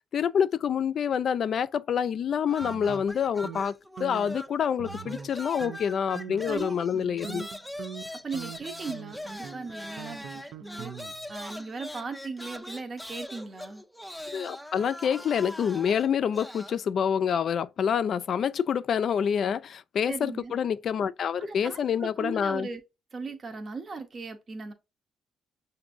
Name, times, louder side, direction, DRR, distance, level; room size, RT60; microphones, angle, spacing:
voice 1, 0.1-7.4 14.3-22.7, left 8 dB, 60° left, 0.3 m, -27 dB
sound 1, 2.5-4.6 4.8-16.8, left 1 dB, ahead, 0.5 m, -41 dB
sound 2, 2.6-3.6 4.0-4.4 4.8-5.3 5.6-5.8 6.1-6.6 7.0-11.3, right 8 dB, 80° right, 0.3 m, -42 dB
voice 2, 6.5-7.0 8.1-10.9 11.3-13.8 20.1-20.5 21.4-22.8 23.1-24.7, right 4 dB, 40° right, 0.7 m, -38 dB
5.9 x 2.6 x 2.5 m
cardioid pair, 90°, 0 cm